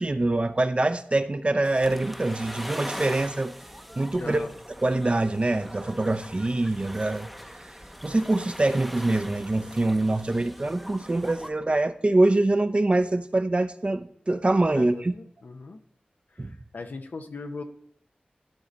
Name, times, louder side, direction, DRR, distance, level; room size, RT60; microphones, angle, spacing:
voice 1, 0.0-3.5 4.0-4.4 4.8-7.3 8.0-15.1 16.4-16.5, right 2 dB, 40° right, 0.5 m, -24 dB
sound 1, 1.6-11.5, equal, ahead, 0.7 m, -41 dB
voice 2, 4.2-4.5 14.7-15.8 16.3-17.6, left 3 dB, 80° left, 0.7 m, -39 dB
11.5 x 4.1 x 3.9 m
cardioid pair, 45°, 3 cm